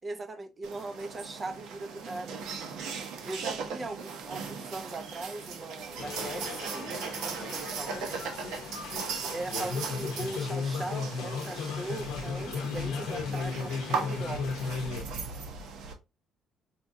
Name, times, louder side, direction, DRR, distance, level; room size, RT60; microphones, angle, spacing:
voice 1, 0.0-2.4 3.2-8.2 9.2-14.5, right 2 dB, 25° right, 0.5 m, -39 dB
sound 1, 0.6-15.9, right 5 dB, 80° right, 0.8 m, -38 dB
sound 2, 6.0-15.0, left 5 dB, 85° left, 0.6 m, -35 dB
4.3 x 2.3 x 2.6 m
cardioid pair, 130°, 0 cm